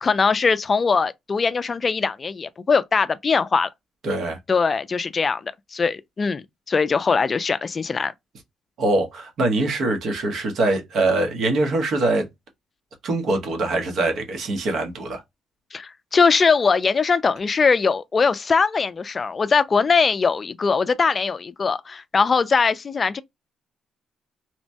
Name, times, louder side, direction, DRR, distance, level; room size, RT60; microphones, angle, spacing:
voice 1, 0.0-3.7 4.5-8.1 15.7-23.2, left 5 dB, 35° left, 0.3 m, -21 dB
voice 2, 4.0-4.4 8.8-12.3 13.0-15.2, right 2 dB, 65° right, 1.0 m, -23 dB
2.9 x 2.2 x 2.6 m
cardioid pair, 90°, 0 cm